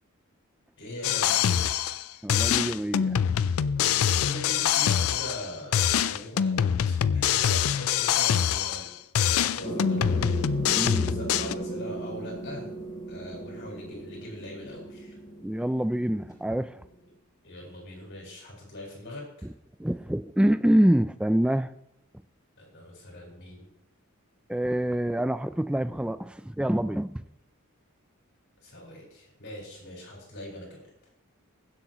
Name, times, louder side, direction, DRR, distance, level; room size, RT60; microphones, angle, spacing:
voice 1, 0.8-1.7 2.1-2.3 3.7-8.9 9.2-10.2 10.9-12.7 13.1-15.2 17.4-19.5 22.6-23.7 28.6-31.1, left 1 dB, 55° left, -2 dB, 5.1 m, -41 dB
sound 1, 1.0-2.0 2.3-5.5 5.7-8.9 9.2-11.5, left 9 dB, 70° left, 0.4 m, -25 dB
voice 2, 2.2-3.2 10.8-11.0 15.4-16.7 19.8-21.7 24.5-27.2, right 1 dB, 5° right, 12 dB, 0.3 m, -26 dB
sound 2, 9.6-16.8, right 2 dB, 15° left, 5.2 m, -37 dB
22.0 x 7.9 x 3.0 m, 0.80 s
head